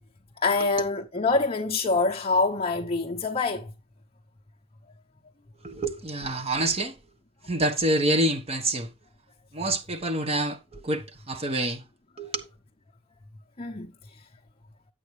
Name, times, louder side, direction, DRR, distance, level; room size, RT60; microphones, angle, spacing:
voice 1, 0.4-3.7 13.6-13.9, left 3 dB, 30° left, 0.9 m, -25 dB
voice 2, 5.6-7.0 7.4-8.9 9.5-11.8 12.2-12.5, right 1 dB, 30° right, 1.3 m, -27 dB
11.0 x 8.3 x 3.3 m
head